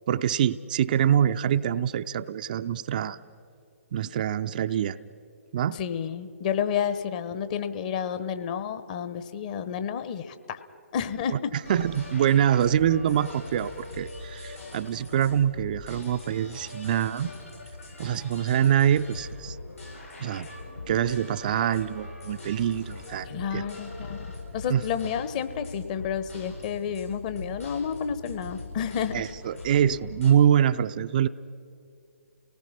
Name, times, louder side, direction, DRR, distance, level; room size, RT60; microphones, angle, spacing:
voice 1, 0.1-3.2 3.9-5.0 5.5-5.8 11.3-11.4 11.7-17.3 18.0-19.6 20.2-20.5 20.9-23.7 24.7-24.8 29.1-31.3, right 9 dB, 35° right, 10 dB, 0.4 m, -25 dB
voice 2, 5.7-10.6 10.9-11.5 23.3-24.3 24.5-29.2, left 8 dB, 35° left, 12 dB, 0.9 m, -30 dB
sound 1, 11.6-30.3, left 2 dB, 85° left, 7.4 m, -41 dB
29.5 x 19.0 x 5.8 m, 2.5 s
figure-of-eight pair, 130°, 8 cm